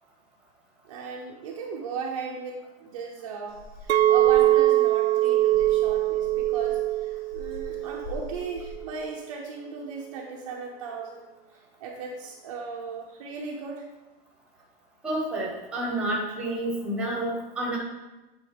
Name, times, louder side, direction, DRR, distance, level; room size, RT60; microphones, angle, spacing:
voice 1, 0.9-11.3 11.8-13.9, right 5 dB, 30° right, -1 dB, 0.6 m, -36 dB
sound 1, 3.5-8.8, left 1 dB, 45° left, 1.0 m, -43 dB
Chink clink, 3.9-8.2 8.6-9.0, right 14 dB, 85° right, 0.6 m, -22 dB
voice 2, 15.0-17.8, right 1 dB, 5° right, -3 dB, 1.0 m, -29 dB
8.5 x 4.0 x 5.1 m, 1.1 s
supercardioid pair, 175°, 32 cm